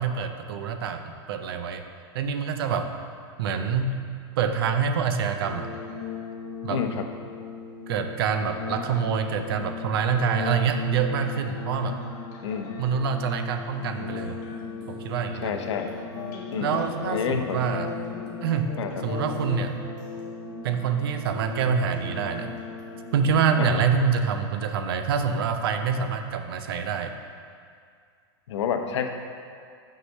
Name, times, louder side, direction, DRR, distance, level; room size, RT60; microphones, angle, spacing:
voice 1, 0.0-1.9 2.1-2.9 3.4-4.0 4.4-5.7 6.6-6.8 7.9-12.0 12.8-14.4 14.9-15.5 16.6-17.9 18.4-19.7 20.6-22.6 23.1-27.1, right 6 dB, 55° right, 7 dB, 0.6 m, -26 dB
sound 1, 5.4-24.4, left 6 dB, 40° left, 1.1 m, -37 dB
voice 2, 6.7-7.0 12.4-12.8 15.4-15.9 16.5-17.6 18.8-19.0 23.6-23.8 28.5-29.1, left 7 dB, 80° left, 5 dB, 0.8 m, -29 dB
sound 2, 13.6-23.9, right 1 dB, 90° right, 2.0 m, -49 dB
6.4 x 4.8 x 6.3 m, 2.2 s
supercardioid pair, 175°, 15 cm